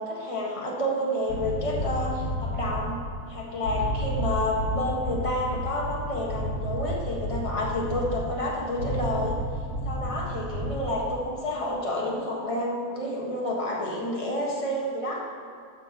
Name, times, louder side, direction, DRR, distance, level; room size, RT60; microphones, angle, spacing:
voice 1, 0.0-3.0 3.3-9.4 9.8-15.2, left 1 dB, 20° left, -3 dB, 1.3 m, -29 dB
sound 1, 1.3-11.2, equal, 50° left, 3.0 m, -32 dB
12.5 x 4.6 x 5.6 m, 2.1 s
omnidirectional pair, 1.9 m